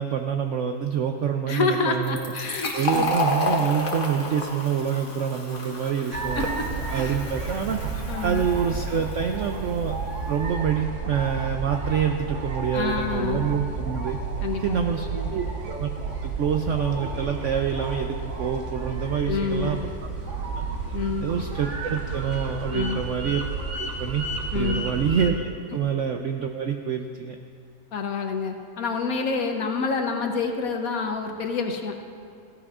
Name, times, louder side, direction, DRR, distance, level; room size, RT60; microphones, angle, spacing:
voice 1, 0.0-2.3 2.7-6.4 6.9-7.8 8.2-10.0 10.3-14.2 14.6-15.9 16.2-19.9 20.6-20.7 21.2-23.4 23.7-24.3 24.5-27.4, right 7 dB, 70° right, 5 dB, 0.7 m, -26 dB
voice 2, 1.5-3.1 6.1-6.7 6.9-7.1 8.1-8.5 12.7-13.5 14.4-14.8 15.1-15.3 19.3-19.8 20.9-21.4 22.7-23.0 24.5-24.8 27.9-31.9, left 4 dB, 60° left, 4 dB, 1.2 m, -28 dB
Fill (with liquid), 2.0-9.4, left 2 dB, 35° left, 1.4 m, -31 dB
sound 1, 6.1-25.3, right 4 dB, 50° right, 1.4 m, -31 dB
16.0 x 15.5 x 2.4 m, 2.5 s
omnidirectional pair, 1.8 m